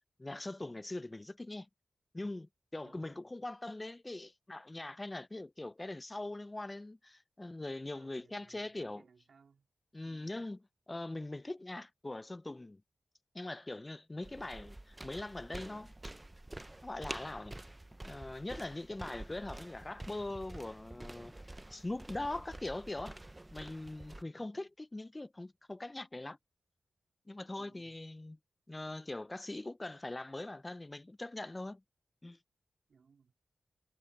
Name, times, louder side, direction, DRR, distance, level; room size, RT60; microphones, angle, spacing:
voice 1, 0.2-1.7 2.1-9.0 9.9-12.8 13.3-15.9 16.8-17.5 18.0-21.3 21.7-23.2 23.5-26.4 27.3-28.4 28.7-31.8 32.2-32.4, left 2 dB, 25° left, 0.5 m, -42 dB
voice 2, 2.8-3.3 7.9-9.7 14.2-14.5 24.2-24.5 27.5-28.0 32.9-33.3, right 5 dB, 75° right, 2.9 m, -65 dB
sound 1, 14.2-24.2, right 1 dB, 20° right, 0.7 m, -48 dB
cardioid pair, 55°, 0 cm